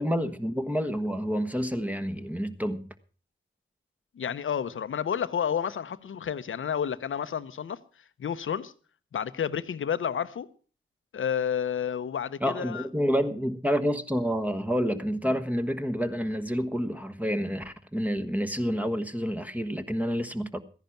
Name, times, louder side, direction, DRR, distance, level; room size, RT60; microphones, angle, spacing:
voice 1, 0.0-2.9 12.4-20.6, equal, 5° right, 1.3 m, -28 dB
voice 2, 4.2-7.8 8.2-8.7 9.1-10.5 11.1-12.9, left 8 dB, 80° left, 0.8 m, -30 dB
14.5 x 10.5 x 5.8 m
cardioid pair, 45°, 20 cm